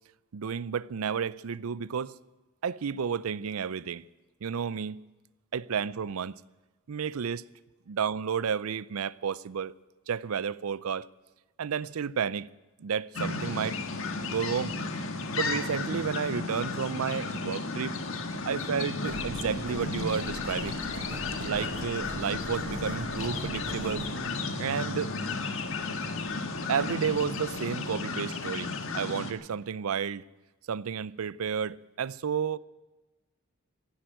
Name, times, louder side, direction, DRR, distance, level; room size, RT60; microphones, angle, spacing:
voice 1, 0.3-2.2 2.6-4.0 4.4-5.0 5.5-6.4 6.9-7.4 7.9-9.7 10.1-11.1 11.6-12.5 12.8-13.8 14.2-14.8 15.3-18.0 18.5-20.8 21.4-24.1 24.6-25.2 26.7-30.3 30.7-32.6, right 7 dB, 75° right, 0.5 m, -31 dB
sound 1, 13.1-29.3, left 3 dB, 65° left, 1.6 m, -34 dB
sound 2, 19.0-27.6, right 1 dB, 45° right, 5.9 m, -42 dB
16.0 x 11.5 x 7.7 m
head